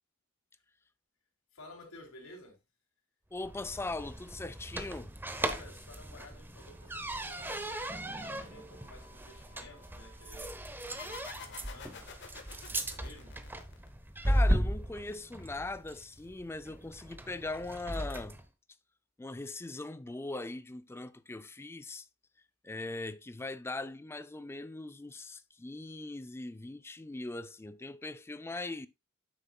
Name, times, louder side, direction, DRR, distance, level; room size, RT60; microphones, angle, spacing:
voice 1, 1.5-2.6 5.4-12.1 12.7-13.4, left 2 dB, 90° left, 3.1 m, -53 dB
voice 2, 3.3-5.1 14.3-18.4 19.2-22.1 22.6-28.9, left 2 dB, 10° left, 0.4 m, -40 dB
sound 1, 3.4-18.4, equal, 10° right, 0.7 m, -36 dB
sound 2, 6.6-10.9, right 2 dB, 35° right, 2.6 m, -62 dB
sound 3, 11.0-14.3, left 6 dB, 60° left, 1.4 m, -49 dB
9.2 x 7.5 x 2.3 m
head